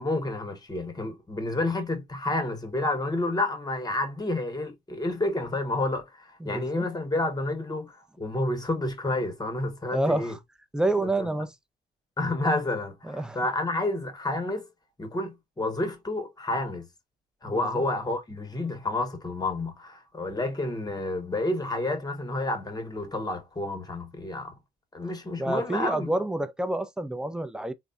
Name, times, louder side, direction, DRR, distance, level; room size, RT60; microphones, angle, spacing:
voice 1, 0.0-10.4 11.0-11.3 12.2-14.7 15.0-16.9 17.4-24.5 24.9-26.1, left 2 dB, 20° left, 0.9 m, -30 dB
voice 2, 6.4-6.8 9.9-10.4 10.7-11.5 13.0-13.4 17.5-17.6 25.4-27.7, right 2 dB, 5° right, 0.4 m, -28 dB
3.3 x 2.1 x 2.4 m
cardioid pair, 90°, 20 cm